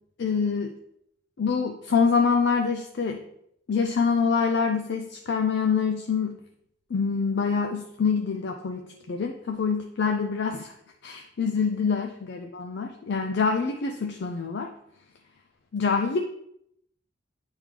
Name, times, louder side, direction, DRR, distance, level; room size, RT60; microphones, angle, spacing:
voice 1, 0.2-0.7 1.4-3.2 3.7-6.4 6.9-10.7 11.0-14.7 15.7-16.2, left 5 dB, 55° left, 4 dB, 0.4 m, -25 dB
8.7 x 3.6 x 3.3 m, 0.76 s
head